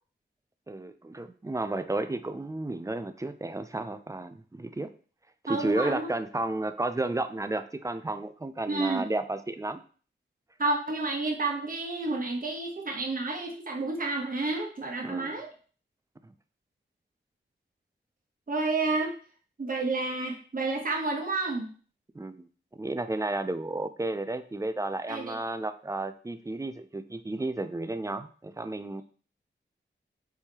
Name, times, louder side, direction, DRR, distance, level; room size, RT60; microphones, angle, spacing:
voice 1, 0.7-4.9 5.4-9.8 15.0-15.3 16.2-16.3 22.1-29.0, right 2 dB, 15° right, 10 dB, 0.3 m, -32 dB
voice 2, 5.5-6.1 8.7-9.0 10.6-15.5 18.5-19.1 19.6-21.7 25.1-25.4, right 3 dB, 45° right, 1 dB, 1.0 m, -30 dB
4.6 x 3.6 x 2.8 m, 0.41 s
wide cardioid pair, 75°, 20 cm